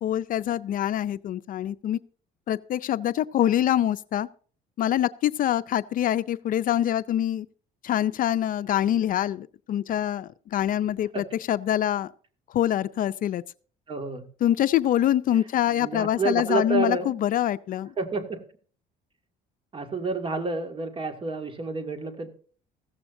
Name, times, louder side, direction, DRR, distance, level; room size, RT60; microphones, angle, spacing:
voice 1, 0.0-2.0 2.5-4.3 4.8-7.5 7.8-12.1 12.5-13.4 14.4-17.9, left 11 dB, 55° left, 0.5 m, -25 dB
voice 2, 13.9-14.2 15.7-17.2 18.0-18.4 19.7-22.3, right 3 dB, 30° right, 2.1 m, -29 dB
15.0 x 14.0 x 2.6 m
cardioid pair, 110°, 17 cm